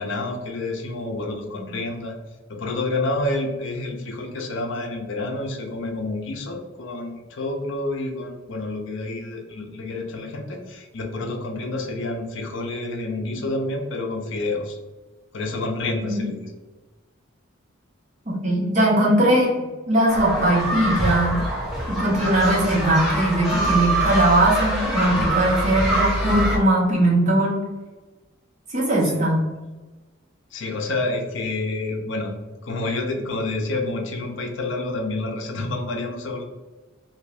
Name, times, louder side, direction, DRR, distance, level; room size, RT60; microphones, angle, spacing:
voice 1, 0.0-2.1 2.5-14.8 15.3-16.5 29.1-29.2 30.5-32.3 32.6-36.4, left 2 dB, 60° left, 2 dB, 0.5 m, -28 dB
voice 2, 18.3-19.5 19.9-21.4 21.9-27.6 28.7-29.5, right 1 dB, 35° right, -4 dB, 0.9 m, -20 dB
sound 1, 20.1-26.6, right 1 dB, ahead, 0.6 m, -24 dB
2.6 x 2.5 x 3.2 m, 1.2 s
head